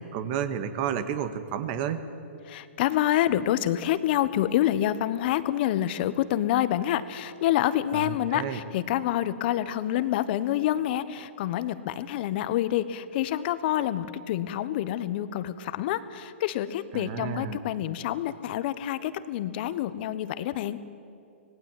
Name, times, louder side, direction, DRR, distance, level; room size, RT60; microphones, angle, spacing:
voice 1, 0.0-2.0 7.9-8.6 16.9-17.6, right 8 dB, 40° right, 10 dB, 1.9 m, -31 dB
voice 2, 2.5-20.8, left 12 dB, 50° left, 14 dB, 1.3 m, -27 dB
25.5 x 19.0 x 9.2 m, 2.7 s
hypercardioid pair, 130°, 7 cm